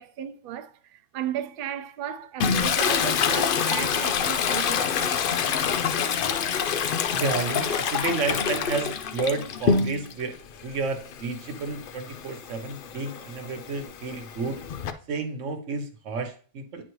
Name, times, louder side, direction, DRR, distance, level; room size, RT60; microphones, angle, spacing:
voice 1, 0.0-5.2, right 10 dB, 60° right, 0.6 m, -35 dB
Toilet flush, 2.4-10.2 10.6-14.9, left 6 dB, 60° left, 0.6 m, -26 dB
voice 2, 7.1-14.6 15.1-16.8, right 3 dB, 75° right, 1.3 m, -31 dB
9.1 x 4.2 x 3.1 m
omnidirectional pair, 1.3 m